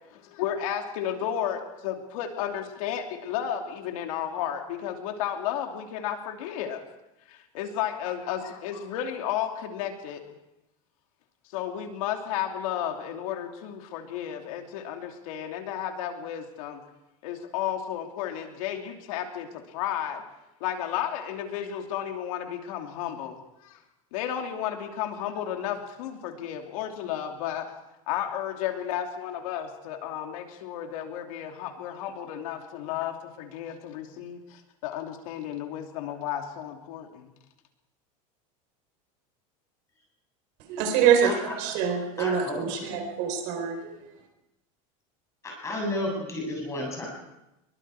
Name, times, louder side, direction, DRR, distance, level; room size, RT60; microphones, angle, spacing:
voice 1, 0.1-6.8 7.3-10.2 11.5-16.8 17.2-20.2 20.6-23.8 24.1-27.7 28.1-37.3, left 10 dB, 75° left, 3 dB, 2.8 m, -33 dB
voice 2, 40.7-43.9, right 8 dB, 55° right, 5 dB, 4.3 m, -25 dB
voice 3, 42.2-43.1 45.4-47.1, left 1 dB, 15° left, -1 dB, 7.9 m, -32 dB
24.0 x 23.0 x 4.9 m, 0.91 s
supercardioid pair, 165°, 18 cm